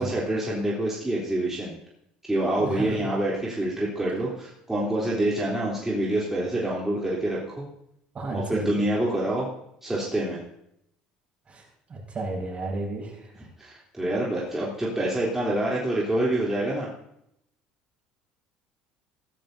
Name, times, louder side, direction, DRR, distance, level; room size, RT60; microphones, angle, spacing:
voice 1, 0.0-1.7 2.3-7.7 8.3-9.5 9.8-10.4 13.6-16.9, right 1 dB, 10° right, -6 dB, 3.4 m, -26 dB
voice 2, 2.6-3.1 8.1-9.0 11.5-11.6 11.9-13.5, right 2 dB, 35° right, 0 dB, 5.7 m, -33 dB
16.0 x 13.0 x 2.7 m, 0.77 s
hypercardioid pair, 75°, 4 cm